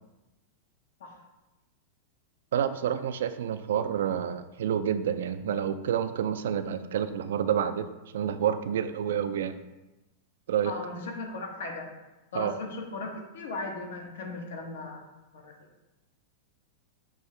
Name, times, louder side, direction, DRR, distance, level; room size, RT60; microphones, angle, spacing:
voice 1, 2.5-7.9 8.1-9.6 10.5-10.7 12.3-12.6, right 9 dB, 80° right, 11 dB, 0.3 m, -28 dB
voice 2, 10.6-11.9 12.3-15.1 15.3-15.5, left 3 dB, 80° left, 2 dB, 1.0 m, -37 dB
6.0 x 2.7 x 3.3 m, 1.0 s
supercardioid pair, 140°, 0 cm